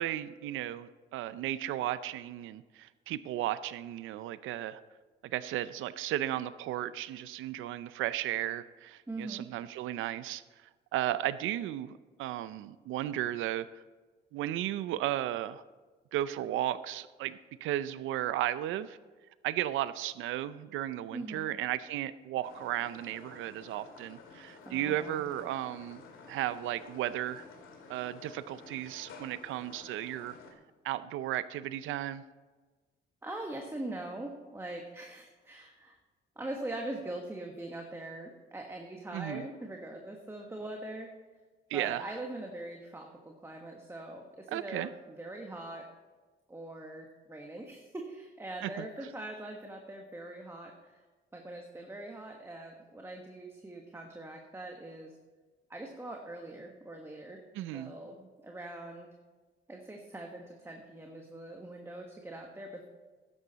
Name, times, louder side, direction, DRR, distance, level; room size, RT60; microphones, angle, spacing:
voice 1, 0.0-4.8 5.2-10.4 10.9-13.7 14.3-15.6 16.1-19.0 19.4-26.0 26.3-27.4 27.9-30.4 30.8-32.2 39.1-39.5 41.7-42.0 44.5-44.9 48.6-48.9 57.5-57.9, right 13 dB, 90° right, 15 dB, 0.6 m, -34 dB
voice 2, 9.1-9.5 21.1-21.5 24.6-25.3 33.2-36.0 36.4-41.1 41.7-45.9 46.5-51.0 51.3-55.1 55.7-57.4 57.7-59.1 59.7-62.9, right 1 dB, 10° right, 2 dB, 1.4 m, -42 dB
sound 1, 22.4-30.5, left 4 dB, 80° left, 2.1 m, -52 dB
12.5 x 9.9 x 4.1 m, 1.3 s
cardioid pair, 90°, 20 cm